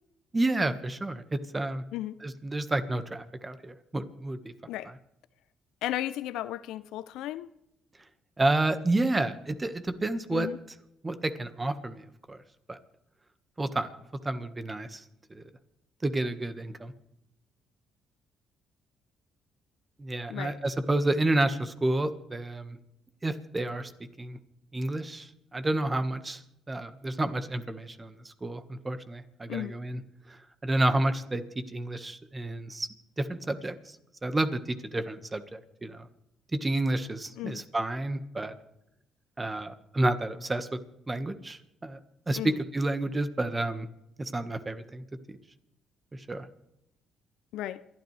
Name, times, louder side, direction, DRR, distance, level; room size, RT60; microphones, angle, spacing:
voice 1, 0.3-1.8 2.2-4.5 8.4-10.5 11.0-12.4 12.7-12.8 13.6-13.9 14.2-15.0 15.3-15.4 16.0-16.9 20.0-22.8 23.2-23.9 24.2-24.4 24.7-26.4 26.7-30.0 30.3-31.4 31.7-32.9 33.2-34.0 34.2-36.1 36.5-38.5 39.4-40.7 41.1-42.0 42.3-43.9 44.2-45.0 46.1-46.5, right 2 dB, 25° right, 1.5 m, -30 dB
voice 2, 5.8-7.5 10.3-10.6 20.3-20.6 29.5-29.7 37.4-37.6 42.3-42.6 47.5-47.9, left 14 dB, 80° left, 0.5 m, -35 dB
28.0 x 12.0 x 3.4 m
supercardioid pair, 70°, 0 cm